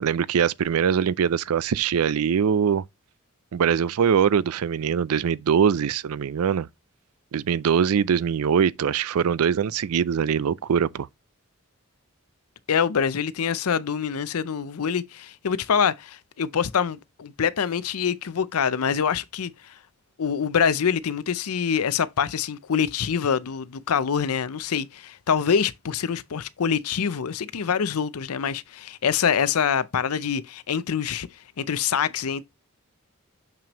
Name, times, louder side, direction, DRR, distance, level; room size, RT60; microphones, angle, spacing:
voice 1, 0.0-2.8 3.5-6.7 7.3-11.1, right 7 dB, 80° right, 0.4 m, -22 dB
voice 2, 12.7-19.7 20.2-31.3 31.6-32.4, left 7 dB, 80° left, 0.6 m, -25 dB
6.9 x 5.9 x 3.0 m
head